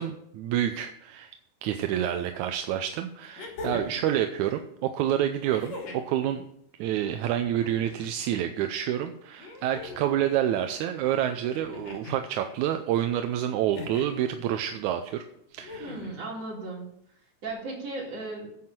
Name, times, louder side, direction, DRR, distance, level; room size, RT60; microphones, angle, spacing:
voice 1, 0.0-1.3 1.6-6.5 6.8-15.2 15.5-16.0, right 11 dB, 80° right, 7 dB, 2.0 m, -28 dB
sound 1, 2.3-2.4 3.4-4.1 5.5-6.2 7.4-8.2 9.4-10.2 11.5-12.2 13.7-14.2 15.6-16.2 17.5-17.6, left 3 dB, 60° left, 4.1 m, -40 dB
voice 2, 15.8-16.9 17.4-18.6, right 2 dB, 55° right, -3 dB, 4.8 m, -36 dB
9.9 x 7.6 x 7.5 m, 0.74 s
omnidirectional pair, 3.5 m